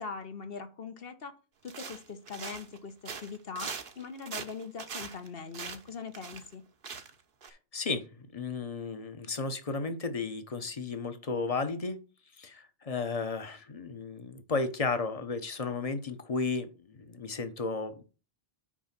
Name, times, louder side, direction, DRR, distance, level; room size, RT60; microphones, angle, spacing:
voice 1, 0.0-1.3 1.6-6.6, left 5 dB, 65° left, 7 dB, 1.3 m, -41 dB
sound 1, 1.7-2.8 3.1-6.5 6.8-7.2 7.4-7.5, right 6 dB, 60° right, 1.0 m, -41 dB
voice 2, 7.7-12.0 12.4-18.0, left 4 dB, 35° left, 9 dB, 1.0 m, -34 dB
6.2 x 5.0 x 5.9 m, 0.34 s
omnidirectional pair, 1.0 m